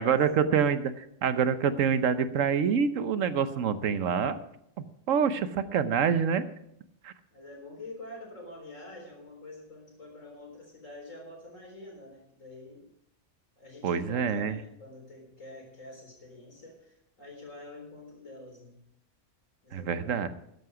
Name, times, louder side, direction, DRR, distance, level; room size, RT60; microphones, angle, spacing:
voice 1, 0.0-4.4 5.1-6.4 7.0-7.1 13.8-14.6 19.7-20.3, right 7 dB, 90° right, 12 dB, 1.2 m, -26 dB
voice 2, 7.3-12.9 13.6-18.8 19.6-20.3, left 2 dB, 90° left, 1 dB, 4.1 m, -47 dB
13.5 x 11.0 x 4.9 m, 0.76 s
omnidirectional pair, 1.3 m